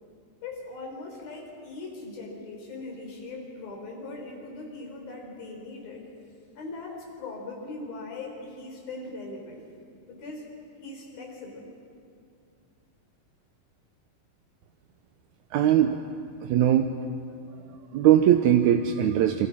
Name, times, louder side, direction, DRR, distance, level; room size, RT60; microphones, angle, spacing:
voice 1, 0.4-6.0 6.6-9.6 10.1-10.4 10.8-11.7, left 3 dB, 80° left, 1 dB, 6.0 m, -40 dB
voice 2, 15.5-16.0 16.4-17.0 17.9-19.5, right 10 dB, 75° right, 6 dB, 1.9 m, -20 dB
28.0 x 24.5 x 6.1 m, 2.4 s
omnidirectional pair, 4.1 m